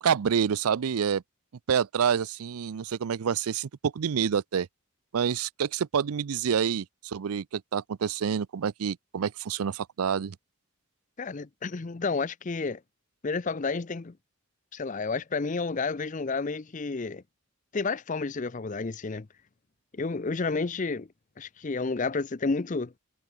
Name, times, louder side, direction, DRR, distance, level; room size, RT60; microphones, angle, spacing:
voice 1, 0.0-1.2 1.7-4.7 5.1-10.4, right 7 dB, 90° right, 0.5 m, -27 dB
voice 2, 11.2-12.8 13.2-14.2 14.7-17.2 17.7-19.3 19.9-21.1 21.4-22.9, left 4 dB, 35° left, 0.5 m, -30 dB
head